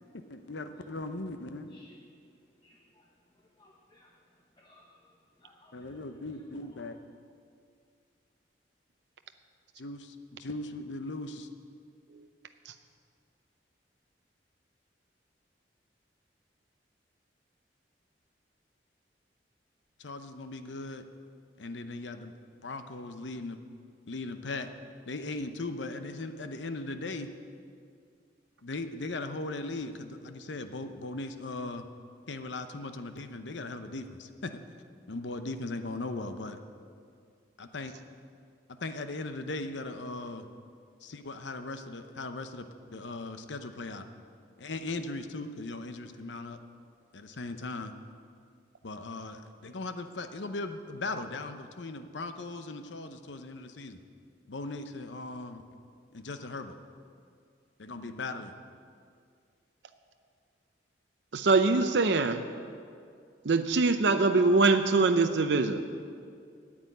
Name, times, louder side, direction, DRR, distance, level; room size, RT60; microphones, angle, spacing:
voice 1, 0.3-1.7 5.7-7.0 9.8-11.5 20.0-21.0 21.6-22.3 22.6-23.6 24.1-24.7 25.1-27.3 28.6-31.8 32.3-34.5 35.1-36.6 37.6-37.9 38.8-40.5 41.0-42.7 42.9-44.1 44.6-46.6 47.1-47.9 48.8-54.0 54.5-55.6 56.1-56.8 57.8-58.5, left 2 dB, 90° left, 9 dB, 0.8 m, -38 dB
voice 2, 2.6-3.1 3.3-4.1 4.6-6.0 6.4-6.8, left 1 dB, 25° left, -1 dB, 0.9 m, -61 dB
voice 3, 61.3-62.4 63.4-65.8, right 3 dB, 75° right, 7 dB, 0.6 m, -23 dB
9.5 x 8.9 x 9.1 m, 2.3 s
head